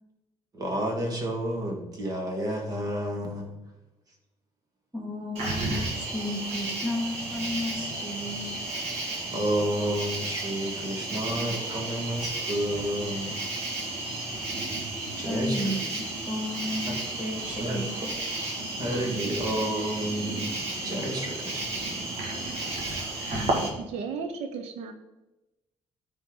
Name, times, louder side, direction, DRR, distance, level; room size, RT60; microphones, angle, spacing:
voice 1, 0.5-3.5 9.3-13.4 15.1-16.0 16.9-17.0 17.6-17.8 18.8-21.7, right 1 dB, 35° right, 1 dB, 2.0 m, -30 dB
voice 2, 4.9-8.6 15.2-18.1 23.3-23.5, left 1 dB, 15° right, -2 dB, 2.3 m, -33 dB
Cricket, 5.3-23.7, right 2 dB, 70° right, 2.1 m, -33 dB
voice 3, 23.8-24.9, right 5 dB, 90° right, 6 dB, 0.9 m, -34 dB
13.5 x 4.5 x 3.8 m, 0.98 s
cardioid pair, 145°, 11 cm